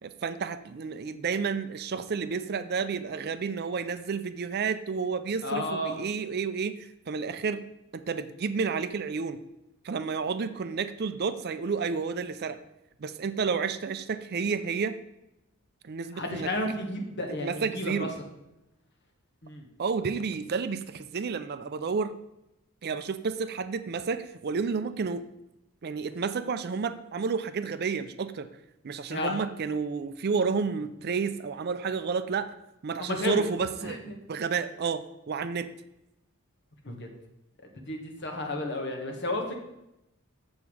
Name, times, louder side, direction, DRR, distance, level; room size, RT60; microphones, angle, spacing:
voice 1, 0.0-7.6 7.9-9.4 9.8-12.6 13.0-15.0 15.8-16.5 17.4-18.1 19.8-22.1 22.8-25.2 25.8-28.5 28.8-32.5 32.8-34.0 34.3-35.7, right 5 dB, 45° right, 11 dB, 0.4 m, -31 dB
voice 2, 5.4-6.0 16.1-18.2 19.4-19.7 29.1-29.3 33.0-33.4 33.8-34.2 36.8-37.1 37.7-39.5, left 1 dB, 50° left, 2 dB, 1.5 m, -32 dB
7.3 x 7.0 x 4.8 m, 0.87 s
head